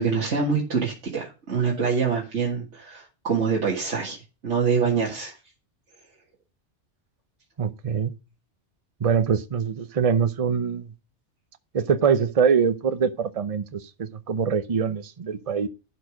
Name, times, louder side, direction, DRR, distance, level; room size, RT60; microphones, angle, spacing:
voice 1, 0.0-5.4, right 5 dB, 80° right, 2.1 m, -25 dB
voice 2, 7.6-8.1 9.0-10.9 11.7-15.7, right 6 dB, 35° right, 0.8 m, -24 dB
12.0 x 4.8 x 5.0 m
omnidirectional pair, 1.2 m